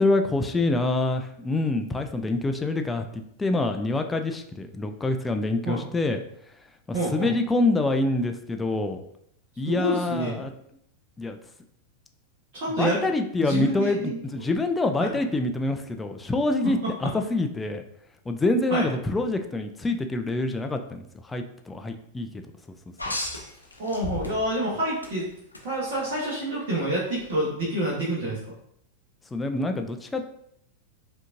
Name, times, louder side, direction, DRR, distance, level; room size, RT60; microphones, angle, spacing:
voice 1, 0.0-6.2 6.9-9.0 9.6-10.5 11.2-11.4 12.8-17.8 18.3-22.4 29.3-30.2, left 2 dB, 10° left, 5 dB, 0.4 m, -26 dB
voice 2, 6.9-7.3 9.6-10.4 12.5-13.0 13.4-14.2 15.0-15.1 16.6-17.1 18.7-18.9 23.8-25.3 25.6-28.4, right 1 dB, 50° right, -6 dB, 1.2 m, -27 dB
sound 1, 23.0-24.6 25.0-25.6 27.2-27.3, left 1 dB, 85° left, 0.6 m, -33 dB
4.9 x 2.8 x 2.5 m, 0.72 s
figure-of-eight pair, 90°, 0 cm